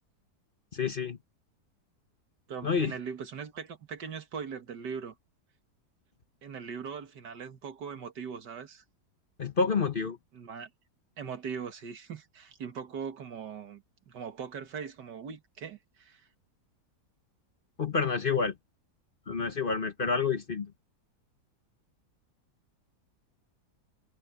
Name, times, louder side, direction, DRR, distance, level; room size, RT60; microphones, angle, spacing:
voice 1, 0.7-1.2 2.6-2.9 9.4-10.2 17.8-18.5 19.3-20.7, left 5 dB, 40° left, 1.0 m, -28 dB
voice 2, 2.5-5.1 6.4-8.8 10.3-10.7 11.2-16.3, right 6 dB, 90° right, 2.2 m, -40 dB
omnidirectional pair, 1.8 m